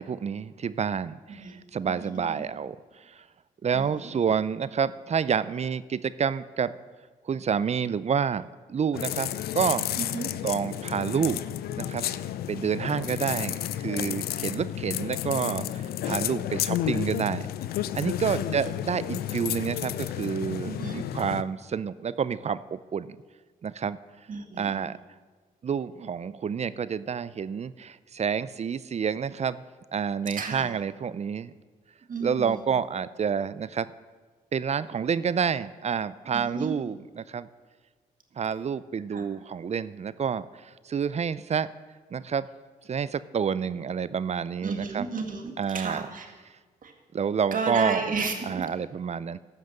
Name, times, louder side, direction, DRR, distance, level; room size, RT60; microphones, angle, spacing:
voice 1, 0.0-3.2 3.6-6.7 7.2-9.9 10.4-11.4 11.8-12.0 12.5-17.5 17.9-23.2 23.6-24.0 24.6-25.0 25.6-29.6 29.9-31.5 32.2-33.9 34.5-37.5 38.4-41.7 42.1-42.5 42.9-45.1 45.6-46.0 47.1-48.0 48.5-49.4, right 7 dB, 45° right, 17 dB, 0.5 m, -29 dB
voice 2, 1.8-2.5 3.7-4.2 10.0-10.3 18.3-18.6 20.6-21.0 24.3-24.9 30.4-30.7 32.1-32.7 36.3-36.7 39.1-39.3 44.6-46.3 46.8-46.9 47.5-48.6, right 4 dB, 60° right, 4 dB, 1.9 m, -33 dB
sound 1, 8.9-21.4, left 12 dB, 85° left, 0.4 m, -31 dB
14.5 x 5.9 x 6.7 m, 1.4 s
supercardioid pair, 55°, 16 cm